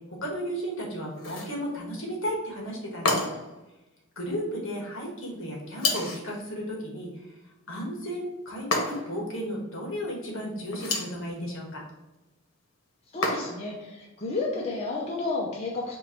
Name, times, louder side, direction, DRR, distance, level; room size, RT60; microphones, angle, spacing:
voice 1, 0.1-3.3 4.2-7.1 7.7-11.8, equal, 65° left, -1 dB, 1.4 m, -34 dB
sound 1, 1.2-1.6 3.0-3.6 5.8-6.3 8.7-9.2 10.7-11.2 13.2-13.7, left 2 dB, 85° left, 1.0 m, -29 dB
voice 2, 13.1-16.0, left 3 dB, 30° left, -4 dB, 0.6 m, -31 dB
4.5 x 2.6 x 4.3 m, 1.0 s
head